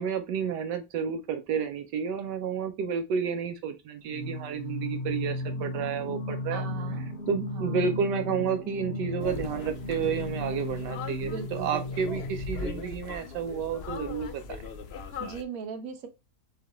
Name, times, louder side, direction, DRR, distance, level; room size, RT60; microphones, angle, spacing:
voice 1, 0.0-6.6 7.3-14.4, right 6 dB, 80° right, 7 dB, 1.2 m, -31 dB
Singing, 4.1-13.0, left 2 dB, 50° left, 0.9 m, -35 dB
voice 2, 6.5-7.1 7.5-7.8 10.4-10.6 11.2-12.2 15.2-16.1, right 7 dB, 60° right, 6 dB, 1.2 m, -39 dB
sound 1, 9.2-15.4, left 5 dB, 85° left, 0.5 m, -40 dB
6.5 x 2.3 x 3.0 m, 0.26 s
omnidirectional pair, 1.8 m